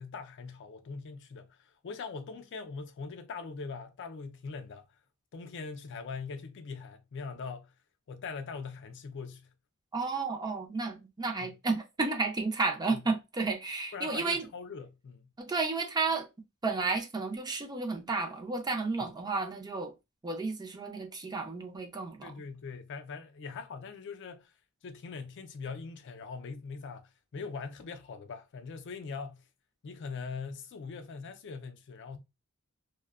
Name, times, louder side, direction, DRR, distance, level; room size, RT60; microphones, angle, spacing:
voice 1, 0.0-4.9 5.3-7.7 8.1-9.5 11.4-11.6 12.9-13.0 13.9-15.3 22.2-24.5 24.8-29.5 29.8-32.2, left 5 dB, 55° left, 0.4 m, -42 dB
voice 2, 9.9-14.5 15.4-16.3 16.6-19.9 20.2-22.3, right 3 dB, 20° right, 0.4 m, -32 dB
2.5 x 2.1 x 2.3 m
head